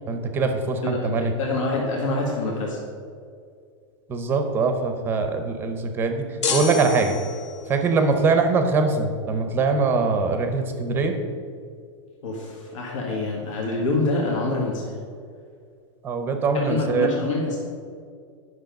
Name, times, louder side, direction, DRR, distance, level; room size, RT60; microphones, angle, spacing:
voice 1, 0.1-1.3 4.1-6.2 6.5-7.2 7.7-11.1 16.0-17.1, right 4 dB, 15° right, 6 dB, 0.6 m, -22 dB
voice 2, 1.3-2.8 12.2-15.0 16.5-17.6, left 2 dB, 85° left, -2 dB, 1.8 m, -26 dB
sound 1, 6.4-7.8, left 5 dB, 65° left, 1.7 m, -28 dB
10.0 x 6.2 x 5.2 m, 2.2 s
supercardioid pair, 175°, 16 cm